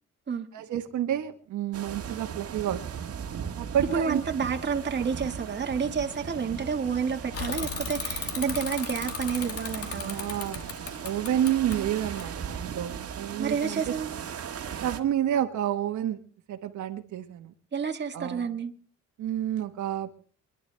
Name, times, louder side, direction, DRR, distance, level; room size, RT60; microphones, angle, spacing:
voice 1, 0.5-3.1 3.6-4.2 10.0-10.6 11.0-13.9 14.8-16.2 16.5-17.5 18.1-18.5 19.2-20.1, right 11 dB, 75° right, 1.3 m, -29 dB
sound 1, 1.7-15.0, right 7 dB, 50° right, 1.6 m, -38 dB
voice 2, 3.9-10.2 11.6-11.9 13.4-14.1 17.7-18.7, right 6 dB, 35° right, 1.7 m, -30 dB
Bicycle / Mechanisms, 7.3-12.8, left 5 dB, 50° left, 2.5 m, -36 dB
26.0 x 11.0 x 3.4 m
cardioid pair, 90°, 30 cm